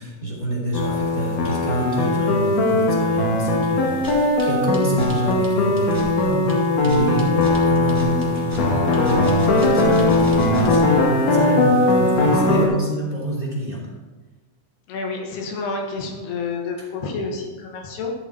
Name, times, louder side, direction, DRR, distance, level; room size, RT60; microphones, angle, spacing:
voice 1, 0.0-13.8, right 2 dB, 10° left, -5 dB, 2.5 m, -27 dB
sound 1, 0.7-12.7, left 2 dB, 60° left, 2.7 m, -19 dB
sound 2, 3.9-11.0, right 1 dB, 35° right, 0.3 m, -35 dB
voice 2, 14.9-18.1, left 4 dB, 80° left, 1 dB, 3.6 m, -29 dB
13.0 x 7.0 x 4.5 m, 1.2 s
omnidirectional pair, 4.6 m